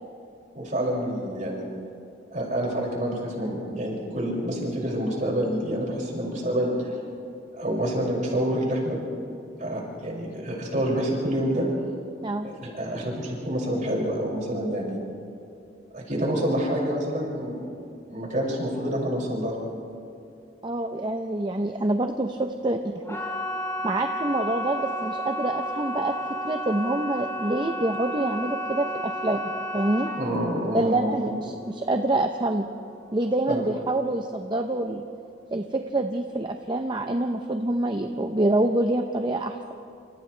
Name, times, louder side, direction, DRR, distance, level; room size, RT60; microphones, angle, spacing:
voice 1, 0.5-1.7 2.3-6.9 7.5-9.0 9.6-11.7 12.4-15.0 15.9-17.7 18.1-19.5 30.1-31.3 33.5-33.6, equal, 45° right, -3 dB, 6.3 m, -27 dB
voice 2, 12.2-12.5 20.6-23.2 23.8-26.1 26.4-30.1 30.7-32.7 33.1-35.0 35.5-39.7, right 2 dB, 25° right, 5 dB, 0.8 m, -26 dB
sound 1, 23.0-33.9 34.1-34.7 35.1-35.2, equal, 15° left, 5.4 m, -32 dB
28.0 x 28.0 x 3.4 m, 2.5 s
head